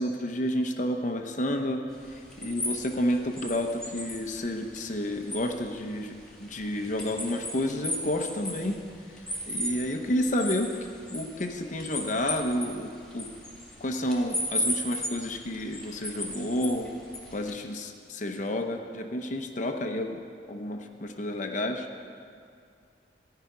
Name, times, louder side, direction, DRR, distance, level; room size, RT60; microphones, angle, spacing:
voice 1, 0.0-1.8 2.1-8.8 9.5-10.7 11.1-13.3 13.8-16.9 17.3-20.2 20.5-21.9, left 1 dB, 45° left, 4 dB, 0.8 m, -30 dB
sound 1, 1.9-17.5, left 1 dB, 5° left, 2.1 m, -37 dB
15.5 x 5.8 x 9.4 m, 2.3 s
head